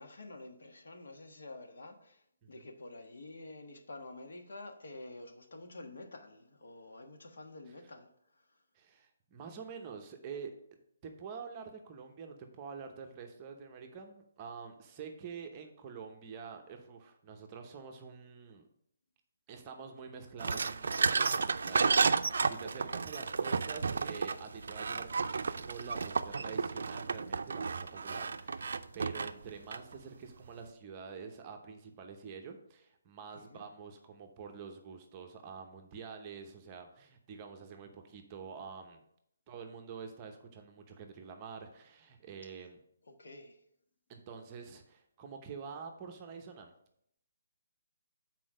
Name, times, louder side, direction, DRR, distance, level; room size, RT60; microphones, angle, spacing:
voice 1, 0.0-8.4 33.3-33.6 43.1-43.6, left 2 dB, 75° left, 1.3 m, -49 dB
voice 2, 8.7-18.6 19.5-39.0 39.5-42.8 44.1-46.7, right 5 dB, 20° right, 0.7 m, -47 dB
sound 1, 20.4-30.0, right 5 dB, 70° right, 0.4 m, -32 dB
6.1 x 4.4 x 6.3 m
hypercardioid pair, 170°, 0 cm